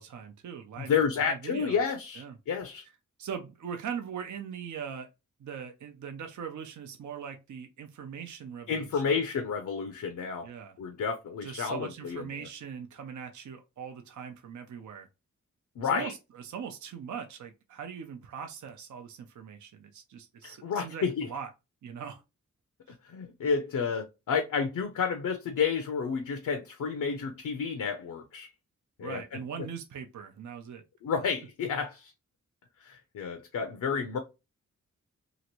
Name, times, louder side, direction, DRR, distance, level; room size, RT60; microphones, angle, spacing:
voice 1, 0.0-0.9 1.2-1.8 2.2-2.4 3.2-5.1 5.4-9.0 10.4-10.8 11.4-15.1 15.8-21.5 21.8-22.2 22.9-23.0 29.0-30.8, right 7 dB, 70° right, 0.5 m, -41 dB
voice 2, 0.8-2.8 8.7-10.5 10.8-12.5 15.8-16.1 20.4-21.3 23.0-28.5 29.0-29.4 31.0-32.1 32.8-34.2, left 6 dB, 75° left, 0.6 m, -31 dB
2.9 x 2.5 x 2.9 m
cardioid pair, 55°, 31 cm